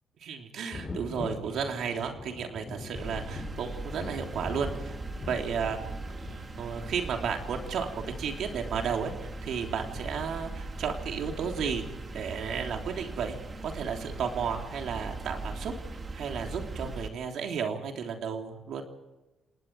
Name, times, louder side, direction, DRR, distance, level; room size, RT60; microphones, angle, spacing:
voice 1, 0.2-4.9 5.3-5.8 6.1-7.9 8.2-11.8 12.1-15.7 16.1-18.8, right 6 dB, 70° right, 3 dB, 3.3 m, -33 dB
Thunder, 0.7-12.1 13.4-13.5 14.1-14.2, left 2 dB, 30° left, 6.4 m, -44 dB
sound 1, 2.9-17.1, right 2 dB, 35° right, 2.8 m, -39 dB
29.0 x 19.5 x 4.8 m, 1.1 s
cardioid pair, 90°, 0 cm